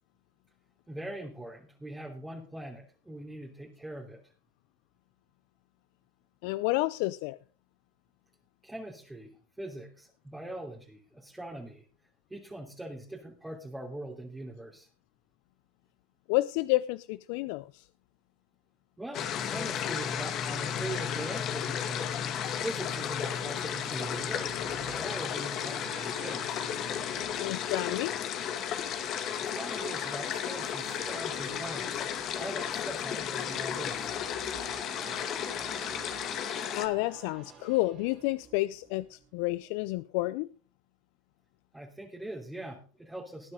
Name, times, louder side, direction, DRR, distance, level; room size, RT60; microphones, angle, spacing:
voice 1, 0.9-4.3 8.6-11.8 12.3-14.9 19.0-22.1 22.6-26.6 29.4-34.2 41.7-43.5, right 1 dB, 10° right, -2 dB, 3.3 m, -42 dB
voice 2, 6.4-7.4 16.3-17.9 27.4-28.1 36.8-40.5, left 19 dB, 65° left, 16 dB, 0.6 m, -30 dB
sound 1, 19.1-36.9, left 9 dB, 50° left, 2.3 m, -34 dB
sound 2, 22.2-39.3 39.6-39.7, right 9 dB, 45° right, 2.3 m, -50 dB
19.0 x 9.5 x 3.9 m, 0.38 s
hypercardioid pair, 90°, 0 cm